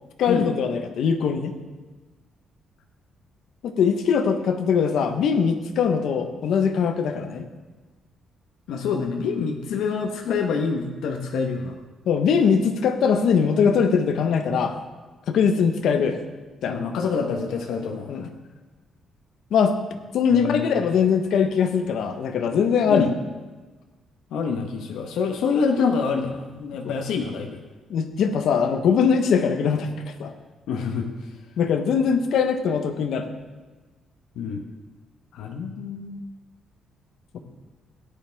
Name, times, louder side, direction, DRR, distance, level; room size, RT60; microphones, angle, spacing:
voice 1, 0.2-1.5 3.6-7.5 12.1-14.8 15.3-16.2 16.6-16.8 18.1-18.2 19.5-19.8 20.1-23.1 26.8-26.9 27.9-30.3 31.6-33.3, left 6 dB, 65° left, 6 dB, 1.1 m, -21 dB
voice 2, 8.7-11.8 16.7-18.1 20.3-20.7 22.9-23.1 24.3-27.6 30.7-31.1 34.3-34.6 35.3-36.2, left 5 dB, 85° left, 2 dB, 1.2 m, -26 dB
16.5 x 10.0 x 3.5 m, 1.2 s
cardioid pair, 160°, 0 cm